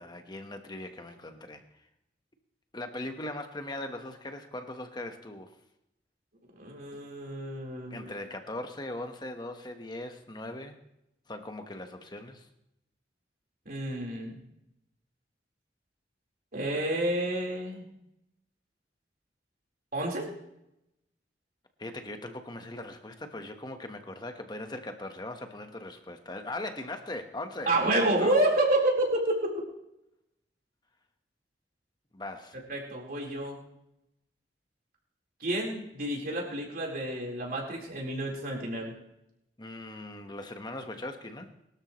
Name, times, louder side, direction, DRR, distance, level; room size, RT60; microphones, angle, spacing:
voice 1, 0.0-1.6 2.7-5.5 7.9-10.8 11.3-12.5 21.8-28.4 32.1-32.6 39.6-41.5, left 1 dB, 25° left, 6 dB, 1.3 m, -39 dB
voice 2, 6.6-8.1 13.7-14.3 16.5-17.9 19.9-20.3 27.7-29.5 32.7-33.6 35.4-38.9, right 1 dB, 55° right, -1 dB, 4.2 m, -29 dB
22.5 x 13.0 x 3.2 m, 0.84 s
head